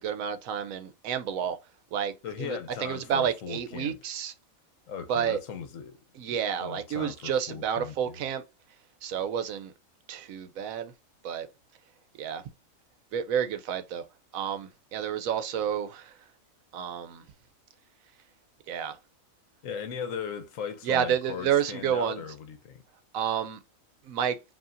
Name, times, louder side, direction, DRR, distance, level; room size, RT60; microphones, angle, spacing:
voice 1, 0.0-1.6 1.9-4.3 5.1-5.4 6.2-8.4 9.0-9.7 10.1-10.9 11.2-11.5 12.2-12.4 13.1-14.0 14.3-16.1 16.7-17.2 18.7-19.0 20.8-22.2 23.1-23.6 24.1-24.4, right 8 dB, 75° right, 1.0 m, -30 dB
voice 2, 2.2-4.0 4.9-6.0 6.3-8.2 19.6-22.8, left 7 dB, 70° left, 1.1 m, -38 dB
5.4 x 2.8 x 2.5 m
omnidirectional pair, 1.5 m